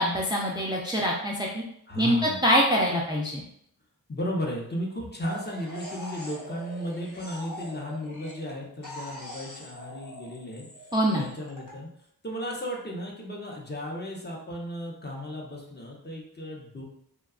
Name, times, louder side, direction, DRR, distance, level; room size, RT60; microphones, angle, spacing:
voice 1, 0.0-1.6 2.0-3.4 10.9-11.2, equal, 10° right, -3 dB, 0.4 m, -24 dB
voice 2, 1.9-2.4 4.1-10.7 11.1-11.9 12.2-16.8, equal, 25° left, -2 dB, 0.7 m, -35 dB
sound 1, 5.2-8.5 8.8-11.7, equal, 55° left, 1.0 m, -42 dB
2.7 x 2.2 x 2.3 m, 0.71 s
cardioid pair, 40°, 38 cm